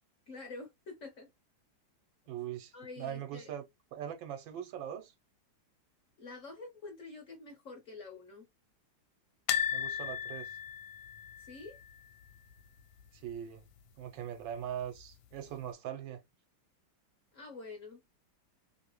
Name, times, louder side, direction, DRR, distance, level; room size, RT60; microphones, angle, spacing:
voice 1, 0.3-1.3 2.7-3.5 6.2-8.5 11.4-11.8 17.3-18.0, left 3 dB, 50° left, 1.0 m, -47 dB
voice 2, 2.3-3.6 3.9-5.1 9.7-10.6 13.1-13.7 14.0-16.2, right 10 dB, 75° right, 1.4 m, -41 dB
sound 1, 9.5-12.5 12.8-13.0 13.3-13.4 14.6-15.1 15.6-15.7, left 9 dB, 80° left, 1.3 m, -36 dB
3.2 x 2.8 x 3.0 m
omnidirectional pair, 2.2 m